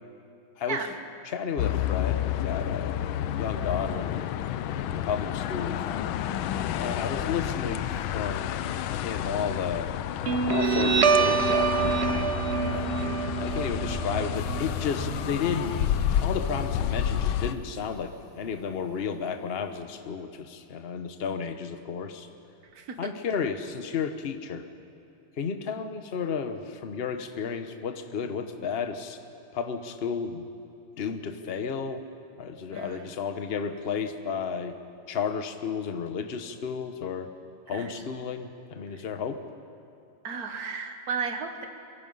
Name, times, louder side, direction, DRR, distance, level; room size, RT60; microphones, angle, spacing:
voice 1, 1.3-3.0 3.4-4.3 4.9-6.1 6.8-7.9 8.1-9.9 10.4-11.7 12.7-13.0 13.4-15.8 16.1-22.3 23.0-24.7 25.4-29.2 29.5-30.5 31.0-32.1 32.4-34.8 35.1-37.3 37.7-39.4, left 6 dB, 40° left, 8 dB, 1.0 m, -32 dB
sound 1, 1.6-17.5, left 11 dB, 80° left, 1.5 m, -30 dB
Guitar, 10.3-17.3, right 5 dB, 65° right, 0.6 m, -27 dB
sound 2, 14.3-19.7, equal, 15° left, 4.7 m, -54 dB
voice 2, 22.7-23.1 32.7-33.1 37.7-37.9 40.2-41.7, right 5 dB, 50° right, 5 dB, 1.8 m, -34 dB
24.0 x 23.0 x 5.6 m, 2.6 s
omnidirectional pair, 2.2 m